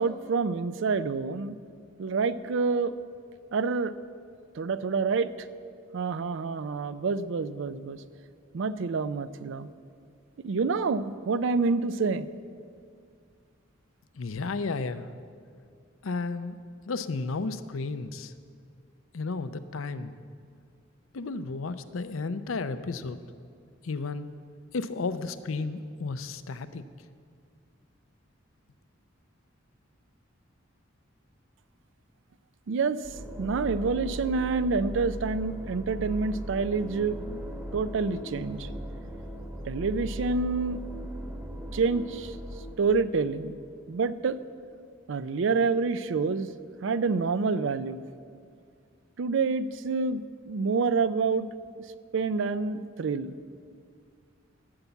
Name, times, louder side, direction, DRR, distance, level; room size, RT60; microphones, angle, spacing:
voice 1, 0.0-1.6 2.0-3.0 3.5-3.9 4.6-5.5 5.9-8.0 8.5-9.7 10.4-12.3 32.7-33.0 33.4-37.4 37.7-38.7 39.7-40.8 41.7-42.4 42.8-43.6 43.9-44.4 45.1-46.5 46.8-48.0 49.2-50.2 50.5-51.5 52.1-53.3, right 4 dB, 65° right, 14 dB, 0.4 m, -27 dB
voice 2, 14.1-15.1 16.0-16.6 16.8-18.3 19.1-20.2 21.1-23.2 23.8-24.3 24.7-26.8, left 3 dB, 80° left, 12 dB, 0.6 m, -33 dB
sound 1, 33.0-43.8, equal, 10° right, 1.1 m, -39 dB
12.5 x 7.1 x 8.0 m, 2.2 s
head